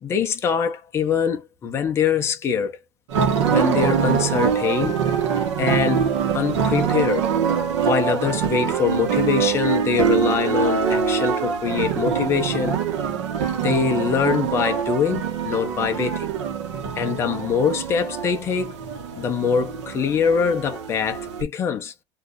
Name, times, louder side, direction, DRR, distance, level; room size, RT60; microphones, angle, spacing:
voice 1, 0.0-2.7 3.5-5.0 5.6-6.1 6.3-7.3 7.8-12.8 13.5-16.3 17.0-18.7 19.2-21.9, left 6 dB, 15° left, 0.5 m, -23 dB
sound 1, 3.1-21.4, right 7 dB, 80° right, 1.1 m, -24 dB
2.6 x 2.3 x 3.6 m
supercardioid pair, 170°, 15 cm